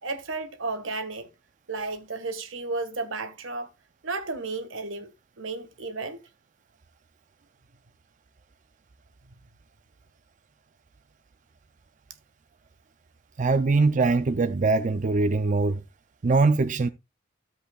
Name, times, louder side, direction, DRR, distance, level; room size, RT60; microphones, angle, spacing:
voice 1, 0.0-1.3 1.7-3.7 4.0-6.2, right 3 dB, 90° right, 1.6 m, -33 dB
voice 2, 13.4-15.8 16.2-16.9, right 3 dB, 40° right, 0.5 m, -22 dB
12.5 x 8.0 x 2.3 m
head